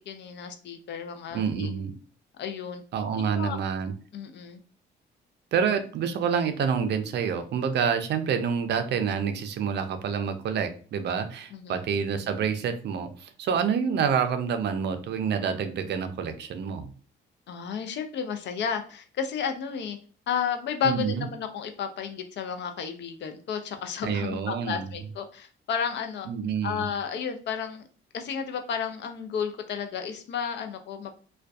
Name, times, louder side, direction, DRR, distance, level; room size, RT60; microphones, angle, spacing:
voice 1, 0.1-1.7 2.4-2.8 3.2-3.6 4.1-4.6 11.5-11.8 17.5-20.0 20.3-26.3 26.6-27.8 28.1-31.1, left 7 dB, 65° left, 7 dB, 0.5 m, -32 dB
voice 2, 1.3-1.9 2.9-3.9 5.5-16.9 20.8-21.3 24.0-24.9 26.3-26.8, right 7 dB, 60° right, 8 dB, 0.4 m, -28 dB
2.5 x 2.2 x 2.3 m, 0.41 s
cardioid pair, 90°, 20 cm